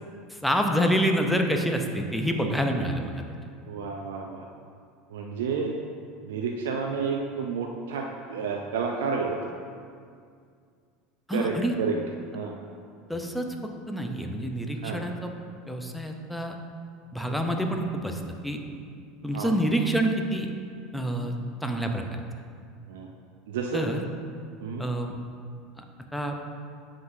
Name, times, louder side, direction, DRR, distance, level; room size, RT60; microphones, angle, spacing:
voice 1, 0.3-3.2 11.3-11.8 13.1-13.5 13.9-15.3 15.7-16.5 17.1-18.6 19.2-20.5 20.9-21.3 21.6-22.2 23.7-24.0 24.8-25.2 25.8-25.9 26.1-26.3, equal, 5° left, 3 dB, 0.6 m, -27 dB
voice 2, 3.7-4.5 5.1-5.8 6.2-9.5 11.3-12.0 12.3-12.6 14.8-15.0 19.3-19.5 22.9-23.1 23.5-23.9 24.6-24.9, right 5 dB, 80° right, 1 dB, 0.4 m, -30 dB
9.2 x 3.9 x 2.7 m, 2.2 s
hypercardioid pair, 95°, 0 cm